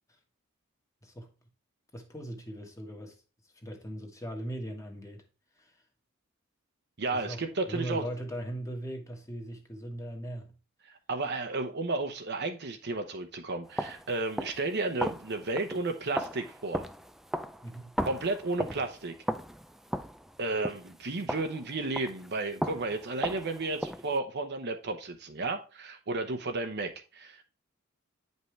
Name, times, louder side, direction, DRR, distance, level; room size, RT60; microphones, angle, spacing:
voice 1, 1.9-3.2 3.4-5.2 5.6-5.8 7.1-10.5 17.6-18.0, right 1 dB, 15° left, 1.5 m, -39 dB
voice 2, 7.0-8.0 11.1-16.9 18.0-19.1 20.4-27.4, right 3 dB, 55° right, 0.9 m, -33 dB
sound 1, 13.7-22.3 22.6-24.2, equal, ahead, 0.3 m, -37 dB
9.0 x 5.5 x 3.3 m
head